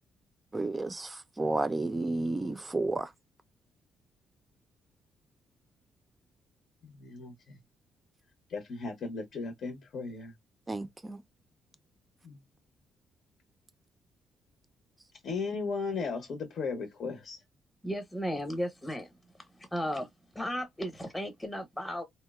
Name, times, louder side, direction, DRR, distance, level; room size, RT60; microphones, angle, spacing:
voice 1, 0.5-3.1 10.7-11.2, right 2 dB, 20° right, 0.4 m, -32 dB
voice 2, 6.8-7.6 8.5-10.3 12.2-12.4 15.2-17.4, left 4 dB, 60° left, 0.6 m, -36 dB
voice 3, 17.8-19.1 19.7-20.1 20.3-22.0, equal, 10° left, 0.8 m, -34 dB
2.8 x 2.0 x 2.2 m
cardioid pair, 90°, 0 cm